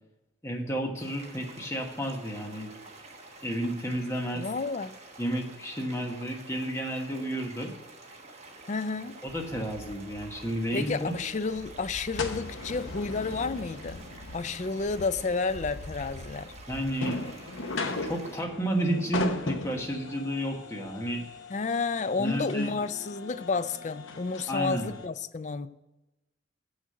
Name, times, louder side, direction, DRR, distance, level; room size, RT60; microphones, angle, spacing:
voice 1, 0.4-2.7 3.4-4.4 5.2-7.7 9.2-11.1 16.7-17.2 18.0-21.2 22.2-22.7 24.5-24.9, right 1 dB, 15° left, 1.4 m, -31 dB
sound 1, 1.0-18.4, right 2 dB, 35° right, 1.3 m, -49 dB
voice 2, 4.3-4.9 8.7-9.2 10.7-14.1 14.3-16.5 21.5-25.7, left 4 dB, 35° left, 0.4 m, -31 dB
sound 2, 9.3-25.1, left 2 dB, 75° left, 0.9 m, -39 dB
7.4 x 6.4 x 7.7 m
head